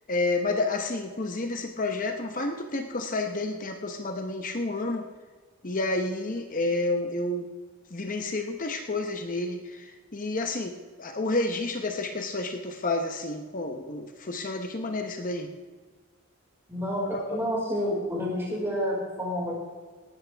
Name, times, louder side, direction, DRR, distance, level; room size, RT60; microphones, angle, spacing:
voice 1, 0.1-5.1 5.6-7.5 7.9-10.7 11.0-15.5 17.1-17.4, left 2 dB, 35° left, 5 dB, 0.9 m, -30 dB
voice 2, 16.7-19.5, equal, 10° right, -5 dB, 5.0 m, -29 dB
18.0 x 13.0 x 3.4 m, 1.4 s
head